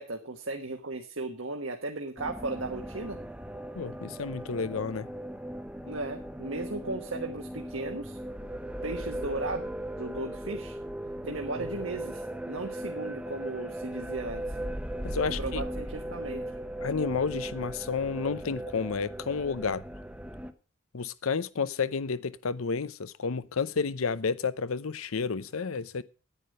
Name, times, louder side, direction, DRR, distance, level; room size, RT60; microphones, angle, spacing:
voice 1, 0.0-3.2 5.8-8.2 8.8-9.6 10.0-10.8 11.2-14.6 15.3-16.4, right 2 dB, 65° right, 1.4 m, -36 dB
sound 1, 2.2-20.5, right 1 dB, 5° right, 0.8 m, -38 dB
voice 2, 3.7-5.1 15.0-15.6 16.8-19.8 20.9-26.0, left 5 dB, 85° left, 0.7 m, -31 dB
10.0 x 9.4 x 6.4 m
head